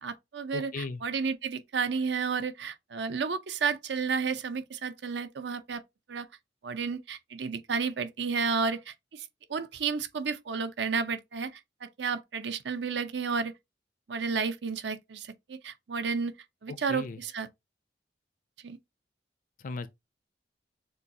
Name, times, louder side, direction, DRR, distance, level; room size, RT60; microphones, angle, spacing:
voice 1, 0.0-5.8 6.1-6.3 6.6-11.5 11.8-13.5 14.1-16.3 16.6-17.5 18.6-18.8, right 5 dB, 75° right, 0.6 m, -32 dB
voice 2, 0.5-1.0 16.7-17.2 19.6-19.9, left 3 dB, 50° left, 0.5 m, -37 dB
6.5 x 2.3 x 2.7 m
head